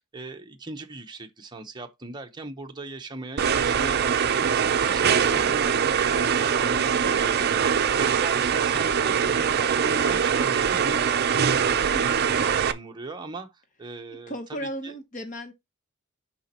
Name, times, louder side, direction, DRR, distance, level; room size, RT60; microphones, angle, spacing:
voice 1, 0.0-14.9, right 2 dB, 20° right, 0.9 m, -39 dB
sound 1, 3.4-12.7, right 7 dB, 50° right, 0.5 m, -23 dB
voice 2, 14.1-15.5, equal, 40° left, 0.9 m, -36 dB
7.4 x 5.2 x 2.9 m
head